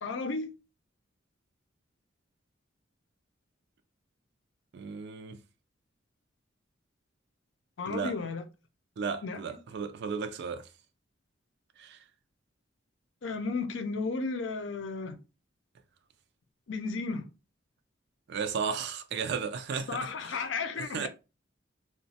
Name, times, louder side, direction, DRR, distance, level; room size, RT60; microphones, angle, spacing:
voice 1, 0.0-0.5 7.8-8.4 9.2-9.6 13.2-15.2 16.7-17.2 19.9-21.1, left 4 dB, 70° left, 0.5 m, -34 dB
voice 2, 4.7-5.4 7.9-8.1 9.0-10.6 11.8-12.0 18.3-20.0 20.8-21.1, right 6 dB, 60° right, 0.3 m, -34 dB
3.0 x 2.1 x 2.7 m
head